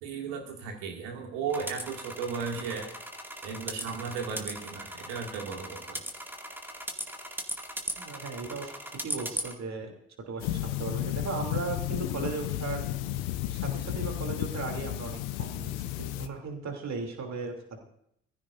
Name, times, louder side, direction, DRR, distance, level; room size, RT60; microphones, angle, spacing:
voice 1, 0.0-2.9 3.4-6.0, right 5 dB, 70° right, 2 dB, 2.3 m, -35 dB
sound 1, 1.5-9.5, right 1 dB, 5° right, 2.2 m, -38 dB
voice 2, 7.9-9.9 10.3-12.9 13.5-17.8, right 4 dB, 45° right, 3 dB, 3.0 m, -37 dB
sound 2, 10.4-16.3, left 14 dB, 70° left, 0.8 m, -33 dB
23.5 x 15.0 x 2.6 m, 0.73 s
figure-of-eight pair, 40°, 37 cm